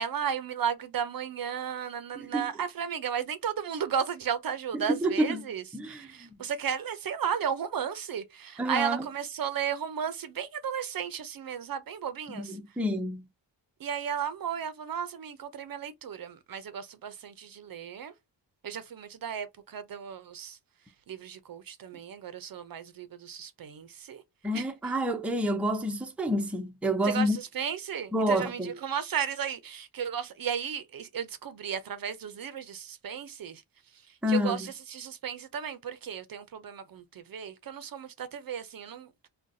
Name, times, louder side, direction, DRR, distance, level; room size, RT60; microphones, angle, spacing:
voice 1, 0.0-12.5 13.8-18.1 18.6-20.6 21.1-24.2 24.5-24.6 27.0-33.6 34.3-39.3, right 8 dB, 55° right, 0.5 m, -34 dB
voice 2, 2.2-2.5 4.7-5.5 5.7-6.3 8.6-9.1 12.3-13.2 24.4-27.4 28.1-28.8 34.2-34.7, equal, 5° right, 0.5 m, -29 dB
3.9 x 2.2 x 2.5 m
cardioid pair, 85°, 44 cm